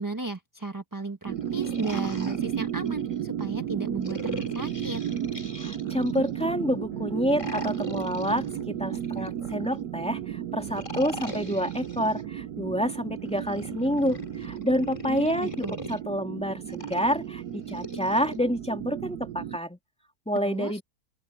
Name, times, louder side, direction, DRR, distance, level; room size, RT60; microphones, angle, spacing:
voice 1, 0.0-5.0 15.1-15.7 20.4-20.8, right 2 dB, 15° right, 1.1 m, -34 dB
sound 1, 1.3-3.2 4.0-6.4 7.3-9.8 10.6-12.2 13.2-16.0 16.7-18.4, left 2 dB, 20° left, 2.9 m, -42 dB
sound 2, 1.3-19.6, right 10 dB, 80° right, 1.3 m, -33 dB
voice 2, 5.6-19.8 20.3-20.8, equal, 5° left, 2.2 m, -28 dB
sound 3, 6.9-13.6, left 2 dB, 80° left, 6.7 m, -51 dB
open air
omnidirectional pair, 1.7 m